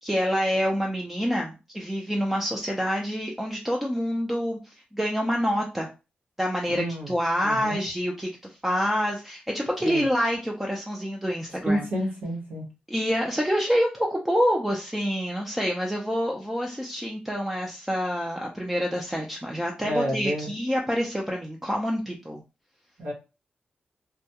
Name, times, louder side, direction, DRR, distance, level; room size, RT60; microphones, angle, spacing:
voice 1, 0.0-5.9 6.4-8.3 8.6-11.9 12.9-22.4, equal, 10° right, -1 dB, 0.5 m, -27 dB
voice 2, 6.7-7.1 7.4-7.8 9.8-10.0 11.6-12.6 19.8-20.5 23.0-23.1, equal, 80° right, -3 dB, 1.0 m, -29 dB
2.2 x 2.2 x 2.8 m, 0.29 s
cardioid pair, 75°, 3 cm